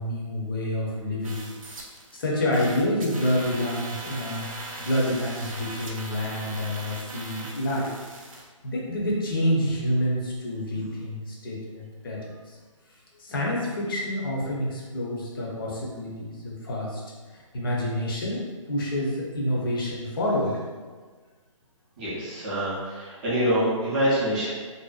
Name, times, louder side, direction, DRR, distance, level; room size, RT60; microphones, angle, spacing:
voice 1, 0.0-1.4 2.1-7.9 8.6-12.6 13.2-17.0 17.3-20.6, left 1 dB, 40° left, -4 dB, 0.6 m, -28 dB
sound 1, 1.2-2.3 2.5-8.4, right 2 dB, 80° right, 0.5 m, -40 dB
voice 2, 22.0-24.5, equal, 15° right, -10 dB, 0.4 m, -25 dB
2.5 x 2.1 x 2.3 m, 1.4 s
hypercardioid pair, 155°, 17 cm